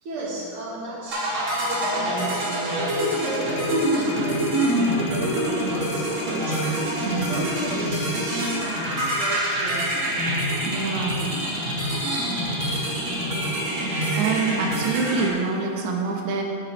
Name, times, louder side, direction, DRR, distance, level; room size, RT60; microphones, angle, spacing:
voice 1, 0.0-3.0 3.2-6.7 7.1-10.1, right 2 dB, 55° right, -4 dB, 1.6 m, -34 dB
sound 1, 1.1-15.3, right 1 dB, 35° right, 2.8 m, -25 dB
sound 2, 3.2-13.3, left 5 dB, 75° left, 1.8 m, -40 dB
voice 2, 7.0-7.4 10.6-11.2 14.2-16.4, right 4 dB, 85° right, 1 dB, 3.3 m, -26 dB
12.0 x 9.6 x 4.7 m, 2.7 s
omnidirectional pair, 4.5 m